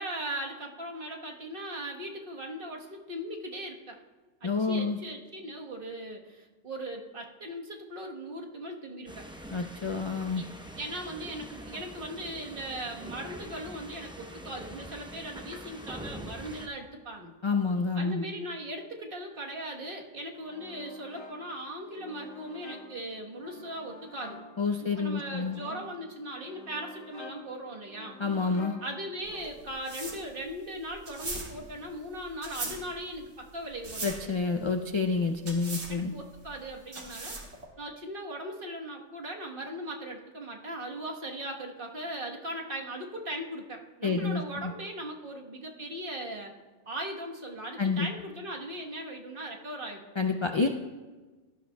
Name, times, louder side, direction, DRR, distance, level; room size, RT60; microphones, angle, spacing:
voice 1, 0.0-4.0 4.4-9.3 10.3-10.5 10.7-17.3 17.9-24.4 24.8-28.2 28.8-34.2 35.9-37.4 37.8-46.5 46.9-50.0, right 1 dB, 50° right, 0 dB, 1.4 m, -39 dB
voice 2, 4.4-5.0 9.5-10.4 17.4-18.2 24.6-25.6 28.2-28.8 34.0-36.1 44.0-44.7 47.8-48.1 50.2-50.7, left 4 dB, 50° left, 5 dB, 0.3 m, -28 dB
sound 1, 9.1-16.7, equal, 5° right, 0.6 m, -44 dB
sound 2, 20.3-29.8, left 2 dB, 30° left, 1.1 m, -48 dB
sound 3, 29.2-37.6, right 3 dB, 75° right, 2.0 m, -40 dB
18.0 x 12.0 x 2.2 m, 1.3 s
omnidirectional pair, 1.2 m